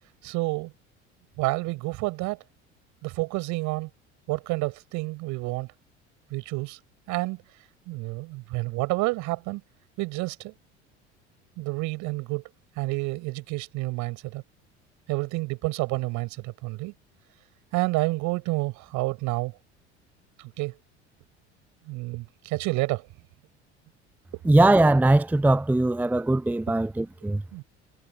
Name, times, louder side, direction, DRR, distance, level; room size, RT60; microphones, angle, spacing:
voice 1, 0.2-0.7 1.4-2.4 3.0-3.9 4.3-5.7 6.3-6.8 7.1-7.4 7.9-9.6 10.0-10.5 11.6-12.4 12.8-14.4 15.1-16.9 17.7-19.5 20.4-20.8 21.9-23.1 27.5-27.6, right 23 dB, 55° right, 6.1 m, -29 dB
voice 2, 24.4-27.4, right 2 dB, 5° right, 0.7 m, -20 dB
figure-of-eight pair, 65°, 35 cm